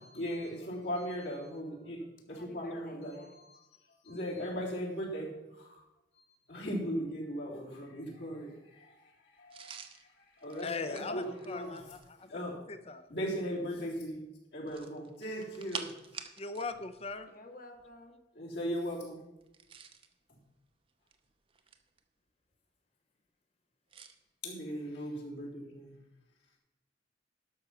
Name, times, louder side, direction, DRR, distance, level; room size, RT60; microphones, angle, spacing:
voice 1, 0.0-2.0 2.3-3.6 4.0-5.8 6.5-9.7 10.2-11.8 12.3-12.6 13.1-14.2 14.5-15.9 18.4-19.2 24.4-26.0, equal, 75° left, -4 dB, 3.5 m, -38 dB
voice 2, 2.3-3.3 17.3-18.2, left 2 dB, 50° left, 4 dB, 1.6 m, -52 dB
sound 1, 9.5-12.2 14.6-16.7 17.0-17.2 19.4-20.1 20.9-22.0 23.9-24.2, right 6 dB, 30° right, 0.7 m, -47 dB
voice 3, 10.6-13.1 16.4-17.3, left 4 dB, 35° left, 10 dB, 0.7 m, -40 dB
12.0 x 6.2 x 5.7 m, 0.93 s
head